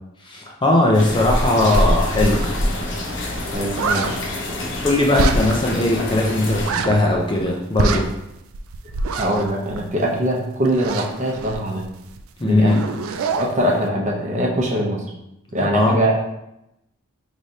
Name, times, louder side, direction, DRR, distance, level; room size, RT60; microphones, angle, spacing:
voice 1, 0.2-2.5 4.8-8.1 12.4-12.8 15.7-16.0, left 2 dB, 20° left, -1 dB, 0.4 m, -19 dB
sound 1, 0.9-6.7, left 1 dB, 55° left, 0.7 m, -25 dB
sound 2, 1.3-2.8 3.1-3.2 3.4-4.1 5.1-5.8 6.1-6.2 6.5-7.5 7.7-10.3 10.7-12.2 12.5-13.5, right 4 dB, 75° right, 0.4 m, -26 dB
voice 2, 3.5-4.3 9.1-11.8 12.4-12.8 13.3-15.0 15.5-16.2, right 1 dB, 35° right, -2 dB, 0.7 m, -22 dB
5.0 x 3.2 x 2.7 m, 0.86 s
head